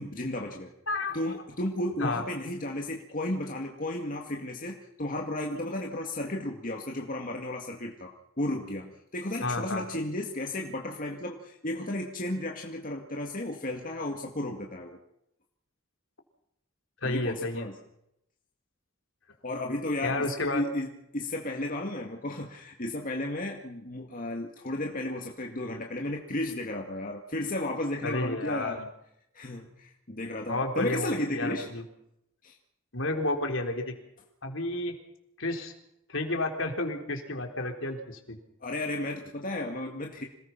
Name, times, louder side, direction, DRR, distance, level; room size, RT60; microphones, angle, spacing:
voice 1, 0.0-0.7 1.1-8.1 8.4-15.0 17.0-17.7 19.4-28.8 29.3-31.7 32.4-32.6 38.6-40.3, left 1 dB, 40° left, 1 dB, 2.2 m, -33 dB
voice 2, 0.9-1.2 2.0-2.2 9.4-9.9 17.0-17.7 20.0-20.6 28.0-28.9 30.5-31.8 32.9-33.9 34.4-34.9 35.4-35.7 36.1-38.4, left 2 dB, 65° left, 4 dB, 3.9 m, -31 dB
27.0 x 19.5 x 6.0 m, 0.80 s
head